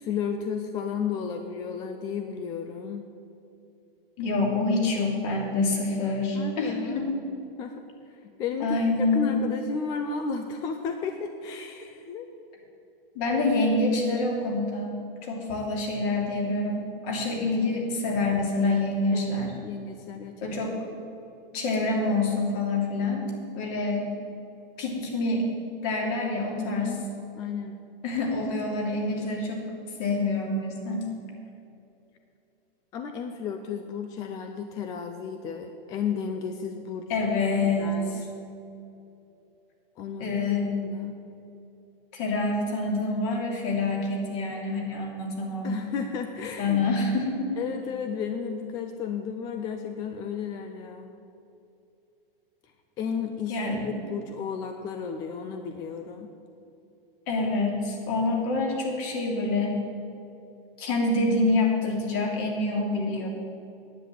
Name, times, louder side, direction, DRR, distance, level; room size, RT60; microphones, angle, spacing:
voice 1, 0.0-3.1 6.4-7.1 7.6-7.7 8.2-12.3 17.1-17.3 19.1-20.8 26.6-27.1 27.4-27.7 32.9-37.1 37.8-38.3 40.0-40.4 40.8-41.2 45.6-46.8 47.6-51.1 53.0-56.3, left 6 dB, 15° left, 6 dB, 0.3 m, -33 dB
voice 2, 4.2-7.1 8.6-9.4 13.1-19.5 20.4-20.7 21.5-23.3 23.6-24.0 24.8-25.4 25.8-26.9 28.0-29.6 30.0-31.1 37.1-38.0 40.2-40.8 42.1-45.8 46.6-47.6 53.5-53.9 57.3-59.8 60.8-63.3, left 2 dB, 40° left, 0 dB, 3.0 m, -26 dB
10.0 x 9.1 x 8.0 m, 2.8 s
hypercardioid pair, 140°, 29 cm